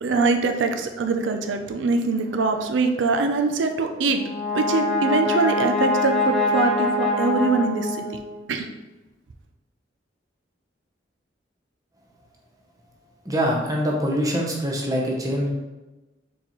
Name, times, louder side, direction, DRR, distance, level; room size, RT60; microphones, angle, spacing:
voice 1, 0.0-4.2 4.5-8.1 8.5-8.7, right 3 dB, 90° right, 6 dB, 0.4 m, -23 dB
Brass instrument, 4.0-8.4, left 2 dB, ahead, 1.1 m, -24 dB
voice 2, 13.2-15.5, equal, 20° right, -1 dB, 0.8 m, -24 dB
4.5 x 4.0 x 3.0 m, 1.1 s
head